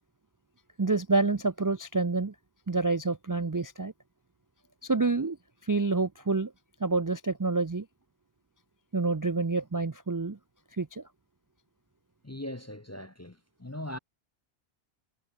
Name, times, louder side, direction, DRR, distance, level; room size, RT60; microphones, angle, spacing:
voice 1, 0.8-2.3 2.7-3.9 4.8-5.4 5.6-6.5 6.8-7.9 8.9-10.4 10.8-11.0, right 3 dB, 25° right, 0.5 m, -28 dB
voice 2, 12.2-14.0, left 1 dB, 15° left, 0.7 m, -40 dB
omnidirectional pair, 1.1 m